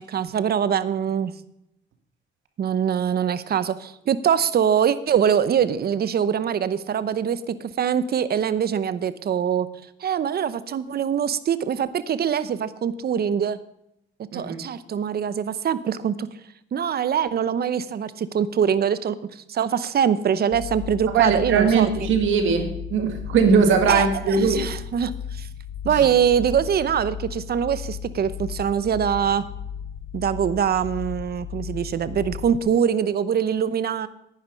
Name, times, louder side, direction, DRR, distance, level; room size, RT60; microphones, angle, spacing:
voice 1, 0.0-1.3 2.6-9.7 10.0-13.6 14.3-16.3 16.7-21.9 23.9-25.5 25.8-29.4 30.1-34.1, right 8 dB, 50° right, 15 dB, 0.8 m, -23 dB
sound 1, 20.5-32.6, left 8 dB, 65° left, 1.2 m, -35 dB
voice 2, 21.1-24.6, right 5 dB, 80° right, 6 dB, 1.9 m, -20 dB
10.0 x 10.0 x 5.3 m, 0.79 s
cardioid pair, 90°, 20 cm